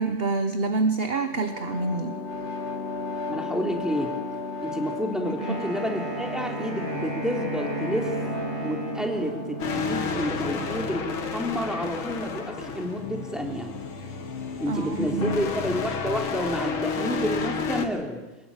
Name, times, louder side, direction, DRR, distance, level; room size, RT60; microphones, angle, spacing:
voice 1, 0.0-2.2 5.2-5.6 14.7-15.5, right 3 dB, 35° right, 8 dB, 1.1 m, -27 dB
sound 1, 0.9-16.4, left 1 dB, 35° left, 2.5 m, -35 dB
voice 2, 3.3-4.1 4.6-8.1 8.6-13.7 14.6-18.2, equal, ahead, 2 dB, 3.4 m, -30 dB
Wind instrument woodwind instrument, 5.4-9.6, right 3 dB, 85° right, 8.5 m, -37 dB
sound 2, 9.6-17.9, left 5 dB, 85° left, 2.7 m, -31 dB
23.0 x 20.5 x 8.9 m, 1.1 s
omnidirectional pair, 2.2 m